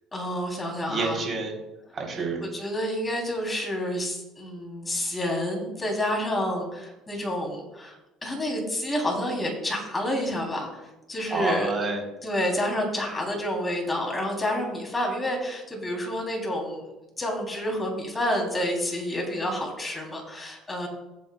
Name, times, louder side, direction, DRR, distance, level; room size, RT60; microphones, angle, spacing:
voice 1, 0.1-1.2 2.5-7.9 8.2-10.8 11.1-11.7 12.2-16.9 17.2-20.9, left 1 dB, 15° left, 0 dB, 3.3 m, -29 dB
voice 2, 0.9-1.5 1.9-2.4 11.3-12.0, right 4 dB, 35° right, 0 dB, 3.6 m, -28 dB
16.0 x 8.6 x 2.3 m, 0.99 s
cardioid pair, 110°, 0 cm